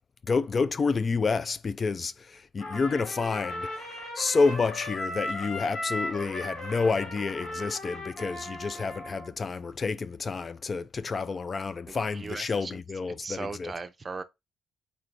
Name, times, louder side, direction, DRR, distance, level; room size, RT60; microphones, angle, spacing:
voice 1, 0.3-13.7, left 4 dB, 35° left, 0.3 m, -29 dB
Trumpet, 2.6-9.3, left 1 dB, 65° left, 2.7 m, -37 dB
voice 2, 11.9-12.7 13.2-14.2, right 4 dB, 30° right, 0.5 m, -38 dB
4.1 x 2.6 x 4.6 m
cardioid pair, 90°, 0 cm